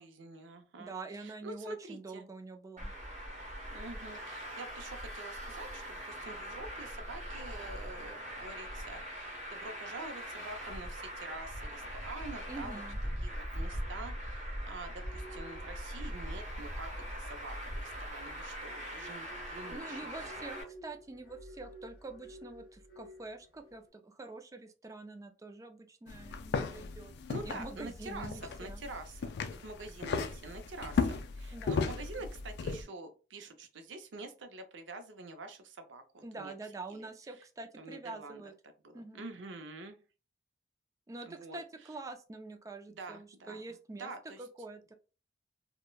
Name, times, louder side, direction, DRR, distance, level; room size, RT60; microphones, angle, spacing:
voice 1, 0.0-2.2 3.7-12.8 13.2-20.2 20.6-20.7 27.3-36.5 36.9-37.1 37.8-38.4 38.8-40.0 41.2-41.6 43.0-43.6 44.0-44.4, right 2 dB, 80° right, 7 dB, 0.5 m, -47 dB
voice 2, 0.8-2.9 12.5-13.0 19.7-27.1 27.4-28.8 31.5-31.9 36.2-38.5 38.9-39.3 41.1-44.1 44.4-44.9, right 3 dB, 20° right, 7 dB, 0.3 m, -46 dB
Traffic noise roadway noise, 2.8-20.6, equal, 40° right, 0.9 m, -41 dB
sound 1, 15.0-23.9, equal, 30° left, 1.1 m, -52 dB
sound 2, 26.1-32.8, left 5 dB, 60° left, 0.3 m, -36 dB
3.1 x 2.1 x 2.2 m, 0.33 s
head